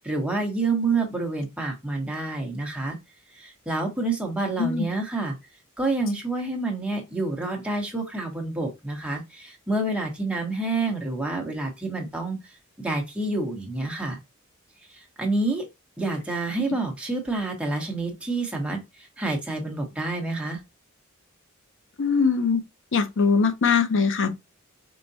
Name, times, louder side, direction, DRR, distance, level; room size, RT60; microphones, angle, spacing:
voice 1, 0.0-3.0 3.4-5.4 5.8-12.4 12.8-14.2 15.2-15.6 16.0-20.6, right 2 dB, 5° right, 0.9 m, -28 dB
voice 2, 22.0-22.6 22.9-24.3, left 5 dB, 60° left, 0.6 m, -21 dB
4.6 x 2.1 x 2.6 m
head